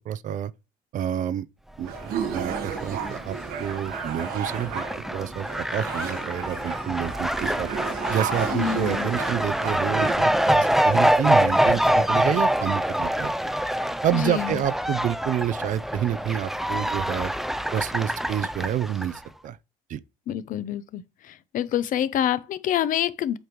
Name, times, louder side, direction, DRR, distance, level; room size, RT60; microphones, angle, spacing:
voice 1, 0.1-0.5 0.9-1.5 1.8-1.9 2.3-4.9 5.1-5.5 5.7-7.7 8.1-13.3 14.0-17.3 17.7-19.6 19.9-20.0, right 10 dB, 60° right, 0.5 m, -28 dB
Fowl, 1.8-19.2, equal, ahead, 0.4 m, -25 dB
sound 1, 1.8-10.1, right 8 dB, 85° right, 1.5 m, -33 dB
voice 2, 8.5-9.1 14.1-14.6 20.3-23.4, left 11 dB, 65° left, 0.8 m, -27 dB
8.0 x 5.2 x 3.1 m
cardioid pair, 90°, 15 cm